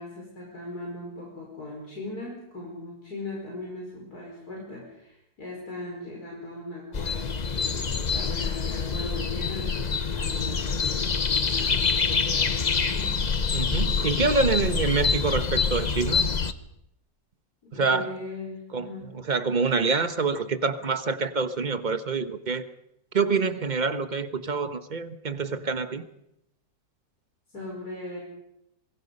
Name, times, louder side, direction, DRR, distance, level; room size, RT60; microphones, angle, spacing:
voice 1, 0.0-9.9 10.1-13.1 17.7-19.1 27.5-28.2, left 2 dB, 75° left, -3 dB, 5.7 m, -39 dB
sound 1, 6.9-16.5, left 5 dB, 35° left, 0.8 m, -26 dB
voice 2, 13.5-16.3 17.7-18.1 18.7-22.6 23.1-26.1, right 4 dB, 30° right, 10 dB, 1.2 m, -26 dB
26.0 x 22.0 x 5.5 m, 0.82 s
omnidirectional pair, 1.7 m